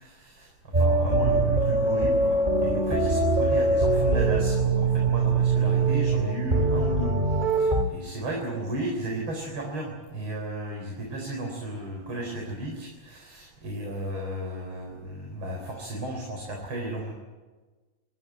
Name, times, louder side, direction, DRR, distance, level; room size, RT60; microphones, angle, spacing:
voice 1, 0.0-17.1, right 1 dB, 40° right, 0 dB, 4.8 m, -34 dB
sound 1, 0.7-7.8, right 3 dB, 15° right, 1.9 m, -23 dB
27.5 x 14.5 x 9.3 m, 1.3 s
omnidirectional pair, 3.7 m